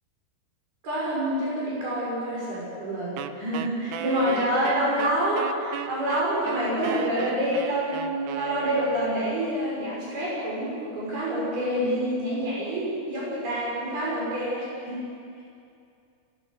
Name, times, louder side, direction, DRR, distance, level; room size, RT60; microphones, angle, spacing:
voice 1, 0.8-15.0, right 1 dB, 70° right, -6 dB, 8.5 m, -27 dB
Wind instrument woodwind instrument, 3.2-9.2, right 10 dB, 90° right, 3.0 m, -36 dB
26.0 x 20.0 x 8.5 m, 2.5 s
omnidirectional pair, 4.6 m